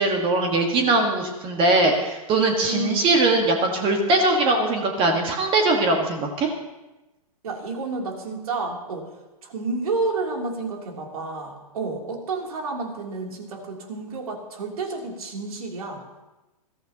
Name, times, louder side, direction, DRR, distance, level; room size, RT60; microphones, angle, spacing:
voice 1, 0.0-6.5, right 2 dB, 25° right, 3 dB, 1.6 m, -21 dB
voice 2, 7.4-9.1 9.4-16.0, right 3 dB, 70° right, 1 dB, 3.2 m, -30 dB
21.0 x 14.5 x 2.9 m, 1.0 s
hypercardioid pair, 125°, 20 cm